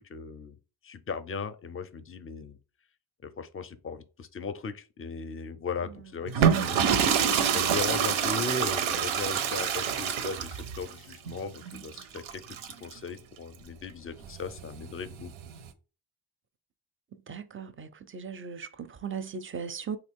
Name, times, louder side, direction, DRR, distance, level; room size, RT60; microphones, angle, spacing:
voice 1, 0.1-0.6 0.8-2.6 3.2-15.3, left 5 dB, 30° left, 0.4 m, -38 dB
sound 1, 6.3-12.9 14.2-15.7, right 8 dB, 90° right, 0.5 m, -27 dB
voice 2, 17.1-20.0, right 6 dB, 30° right, 0.4 m, -38 dB
3.1 x 2.4 x 3.5 m
cardioid pair, 60°, 46 cm